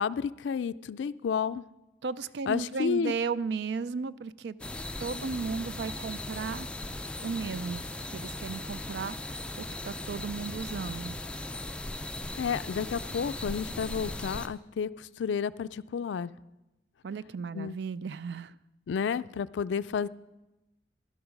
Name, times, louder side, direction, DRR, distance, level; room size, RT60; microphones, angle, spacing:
voice 1, 0.0-1.6 2.5-3.1 12.4-16.3 17.5-17.8 18.9-20.1, left 6 dB, 85° left, 16 dB, 0.3 m, -31 dB
voice 2, 2.0-4.6 5.0-6.7 7.2-7.8 8.1-11.2 17.0-18.5, right 5 dB, 70° right, 17 dB, 0.4 m, -35 dB
sound 1, 4.6-14.5, left 2 dB, 5° left, 0.4 m, -38 dB
12.0 x 12.0 x 5.1 m, 0.98 s
head